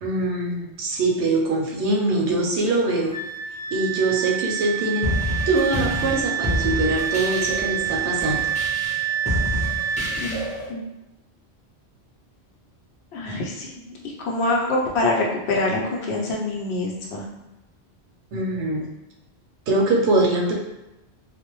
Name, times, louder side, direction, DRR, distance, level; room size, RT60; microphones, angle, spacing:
voice 1, 0.0-3.1 3.7-5.1 5.5-8.5 18.3-18.9 19.7-20.5, right 2 dB, 85° right, -1 dB, 0.9 m, -23 dB
Wind instrument woodwind instrument, 3.1-10.2, right 11 dB, 35° right, 0.7 m, -27 dB
sound 1, 5.0-10.7, left 1 dB, 10° left, 0.5 m, -28 dB
voice 2, 13.1-13.8 14.2-17.3, left 2 dB, 75° left, -2 dB, 0.9 m, -25 dB
2.5 x 2.0 x 2.9 m, 0.93 s
omnidirectional pair, 1.1 m